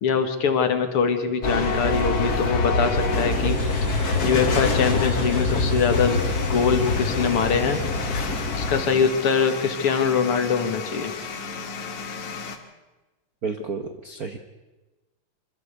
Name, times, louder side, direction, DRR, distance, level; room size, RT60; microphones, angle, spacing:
voice 1, 0.0-3.6 4.2-6.2 6.5-7.8 8.6-11.1, left 6 dB, 55° left, 7 dB, 2.2 m, -23 dB
sound 1, 1.4-8.8, left 3 dB, 40° left, 1.8 m, -24 dB
Harmonica, 3.4-9.0, right 2 dB, 60° right, 3.2 m, -41 dB
sound 2, 5.9-12.6, left 5 dB, 85° left, 3.1 m, -35 dB
voice 2, 13.4-14.4, right 5 dB, 90° right, 7 dB, 0.8 m, -31 dB
25.5 x 13.5 x 8.1 m, 1.1 s
omnidirectional pair, 3.3 m